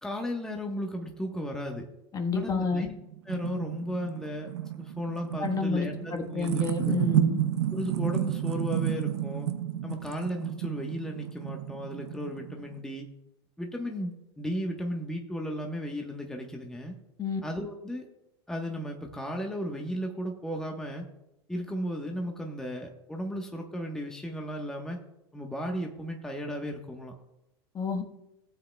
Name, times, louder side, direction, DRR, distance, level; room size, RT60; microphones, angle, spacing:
voice 1, 0.0-1.9 2.3-2.9 3.2-4.5 4.8-7.0 7.7-9.5 9.8-13.1 13.6-16.9 17.4-18.1 18.5-21.0 21.5-25.0 25.3-27.1, equal, 5° left, 1 dB, 1.2 m, -35 dB
voice 2, 2.1-2.9 5.4-7.4 17.2-17.4 27.7-28.0, left 3 dB, 25° left, 4 dB, 1.4 m, -29 dB
sound 1, 2.7-12.8, right 12 dB, 85° right, 0.9 m, -31 dB
17.5 x 7.8 x 2.3 m, 0.87 s
supercardioid pair, 115°, 14 cm